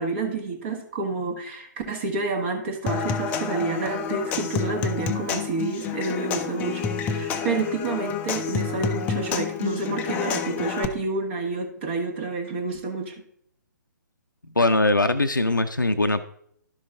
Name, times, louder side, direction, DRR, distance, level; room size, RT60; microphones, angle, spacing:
voice 1, 0.0-13.2, right 3 dB, 40° right, 4 dB, 1.2 m, -29 dB
Human voice / Acoustic guitar / Percussion, 2.9-10.8, left 6 dB, 15° left, 0.5 m, -29 dB
voice 2, 14.6-16.2, left 2 dB, 85° left, 8 dB, 0.5 m, -21 dB
11.5 x 5.4 x 3.5 m, 0.68 s
figure-of-eight pair, 130°, 10 cm